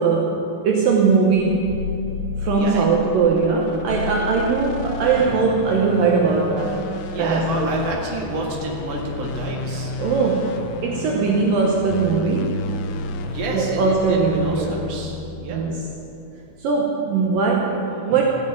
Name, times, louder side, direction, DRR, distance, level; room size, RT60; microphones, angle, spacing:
voice 1, 0.0-1.8 2.4-6.8 7.2-7.7 10.0-12.7 13.5-14.8 15.5-15.9 16.6-18.2, right 4 dB, 70° right, 0 dB, 2.6 m, -20 dB
sound 1, 1.3-15.9, left 5 dB, 85° left, 1.6 m, -31 dB
voice 2, 2.6-2.9 7.1-10.0 13.2-15.7, right 2 dB, 50° right, -1 dB, 2.7 m, -29 dB
15.5 x 7.9 x 8.9 m, 2.9 s
omnidirectional pair, 4.3 m